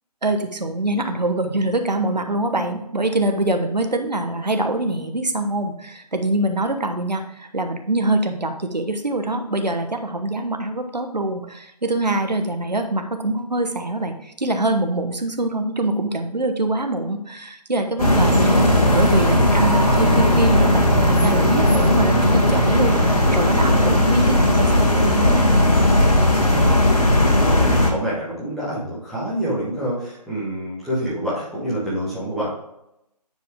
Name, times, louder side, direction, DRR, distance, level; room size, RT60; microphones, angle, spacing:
voice 1, 0.2-18.5 18.8-25.6, right 2 dB, 80° right, 5 dB, 1.2 m, -24 dB
sound 1, 18.0-27.9, left 1 dB, 65° left, 2.3 m, -17 dB
voice 2, 27.1-32.5, equal, ahead, -10 dB, 1.5 m, -27 dB
9.3 x 4.7 x 3.6 m, 0.83 s
figure-of-eight pair, 150°, 21 cm